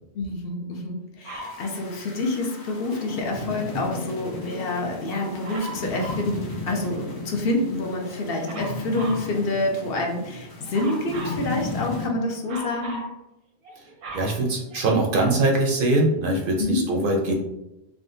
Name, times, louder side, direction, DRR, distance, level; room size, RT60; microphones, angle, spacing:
voice 1, 0.1-13.0 16.6-16.9, left 2 dB, 65° left, 1 dB, 0.8 m, -27 dB
Dog, 1.2-1.6 5.4-6.3 8.4-9.3 10.7-11.4 12.5-13.1 13.6-15.2 15.9-16.0, right 1 dB, 85° right, 1.1 m, -37 dB
sound 1, 1.4-12.1, left 2 dB, 40° left, 0.3 m, -35 dB
voice 2, 14.1-17.3, right 2 dB, 60° right, 0 dB, 0.7 m, -22 dB
3.6 x 2.2 x 2.6 m, 0.91 s
omnidirectional pair, 1.1 m